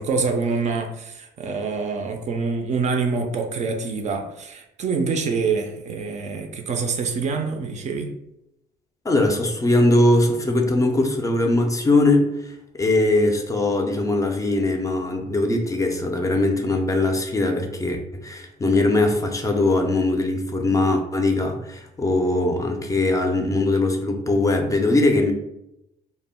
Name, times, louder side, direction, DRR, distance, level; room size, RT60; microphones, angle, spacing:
voice 1, 0.0-8.1, right 4 dB, 45° right, 4 dB, 0.4 m, -26 dB
voice 2, 9.0-25.3, left 2 dB, 20° left, 3 dB, 0.4 m, -21 dB
2.1 x 2.0 x 3.6 m, 0.85 s
cardioid pair, 110°, 17 cm